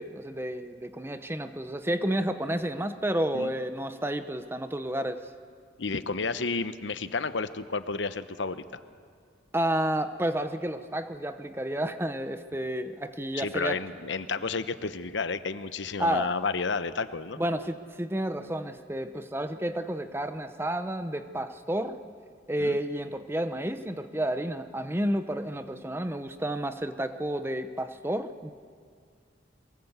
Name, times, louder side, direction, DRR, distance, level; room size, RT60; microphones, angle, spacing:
voice 1, 0.0-5.3 9.5-13.8 16.0-16.3 17.4-22.0 22.5-28.5, right 1 dB, 15° right, 10 dB, 0.8 m, -31 dB
voice 2, 5.8-8.8 13.3-17.4 22.6-22.8, left 4 dB, 80° left, 12 dB, 0.9 m, -31 dB
22.5 x 20.5 x 8.1 m, 2.1 s
head